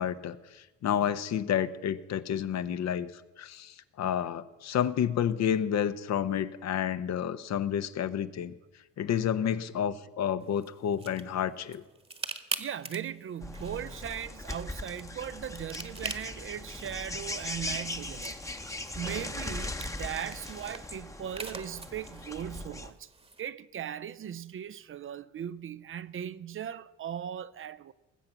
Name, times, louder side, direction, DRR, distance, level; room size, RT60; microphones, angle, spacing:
voice 1, 0.0-3.1 3.4-8.5 9.0-11.8, left 9 dB, 55° left, 0.8 m, -30 dB
sound 1, 10.4-23.4, right 3 dB, 15° right, 1.2 m, -45 dB
voice 2, 12.6-18.4 18.9-23.1 23.4-27.9, right 9 dB, 40° right, 0.5 m, -38 dB
sound 2, 13.4-22.9, left 2 dB, 10° left, 0.9 m, -39 dB
19.5 x 7.7 x 5.7 m
supercardioid pair, 65°, 33 cm